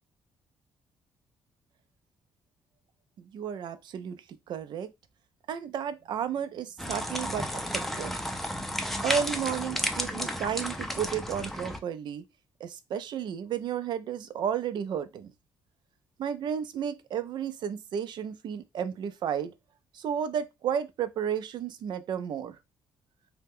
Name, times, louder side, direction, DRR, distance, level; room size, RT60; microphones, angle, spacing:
voice 1, 3.2-4.9 5.5-8.1 9.0-12.2 12.6-15.3 16.2-19.5 19.9-22.6, right 8 dB, 65° right, 0.4 m, -33 dB
sound 1, 6.8-11.8, equal, 5° left, 0.5 m, -32 dB
2.8 x 2.1 x 3.6 m
cardioid pair, 80°, 8 cm